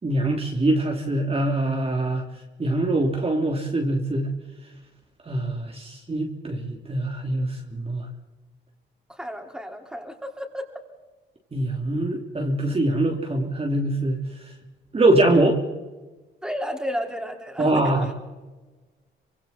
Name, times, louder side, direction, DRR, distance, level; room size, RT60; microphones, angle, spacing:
voice 1, 0.0-2.2 2.6-4.3 5.3-8.1 11.5-14.2 14.9-15.6 17.6-18.2, right 1 dB, 30° right, 2 dB, 3.1 m, -23 dB
voice 2, 9.1-10.7 16.4-18.1, equal, 5° right, 2 dB, 4.8 m, -32 dB
26.5 x 25.5 x 4.4 m, 1.2 s
cardioid pair, 90°, 20 cm